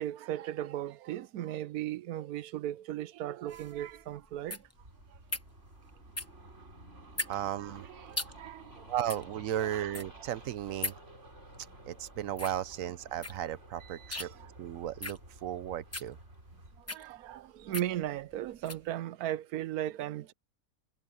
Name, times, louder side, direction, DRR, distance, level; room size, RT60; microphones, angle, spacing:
voice 1, 0.0-4.6 8.0-8.9 9.6-9.9 14.2-14.3 16.9-20.3, right 12 dB, 85° right, 1.1 m, -37 dB
sound 1, 3.5-18.9, left 2 dB, 10° left, 0.8 m, -42 dB
sound 2, 4.7-16.8, right 1 dB, 50° right, 5.1 m, -53 dB
voice 2, 7.3-7.9 8.9-10.9 11.9-14.3 14.6-16.2, right 11 dB, 70° right, 1.0 m, -35 dB
omnidirectional pair, 1.6 m